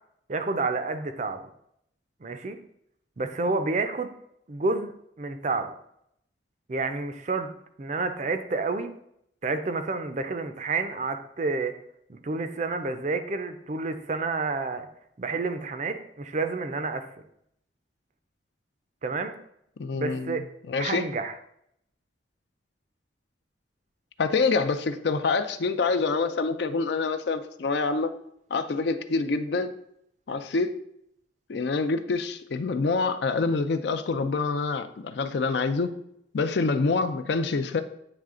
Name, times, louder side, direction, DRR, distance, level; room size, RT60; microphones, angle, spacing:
voice 1, 0.3-1.4 2.2-2.6 3.2-4.1 4.5-4.9 5.2-5.7 6.7-7.5 7.8-8.9 9.4-11.8 12.1-14.9 15.2-17.1 19.0-19.3 19.9-20.4 20.8-21.3, right 3 dB, 40° right, 0.4 m, -29 dB
voice 2, 19.8-21.0 24.2-28.1 28.5-29.7 30.3-30.7 31.5-35.9 36.3-37.8, left 4 dB, 60° left, 0.4 m, -26 dB
8.8 x 3.2 x 3.7 m
head